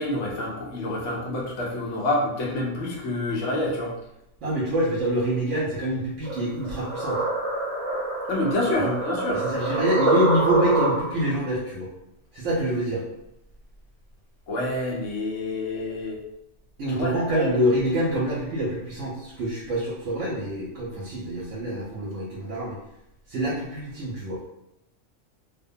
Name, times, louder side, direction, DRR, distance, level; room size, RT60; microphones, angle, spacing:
voice 1, 0.0-3.9 8.3-9.4 14.5-16.2 16.9-17.5, left 1 dB, 85° left, -3 dB, 1.1 m, -27 dB
voice 2, 4.4-7.2 8.8-8.9 9.3-11.9 12.3-13.0 16.8-22.8 23.3-24.4, right 1 dB, 80° right, -5 dB, 1.0 m, -26 dB
sound 1, 6.2-11.3, right 2 dB, 35° right, 0.7 m, -26 dB
2.6 x 2.1 x 2.6 m, 0.82 s
omnidirectional pair, 1.3 m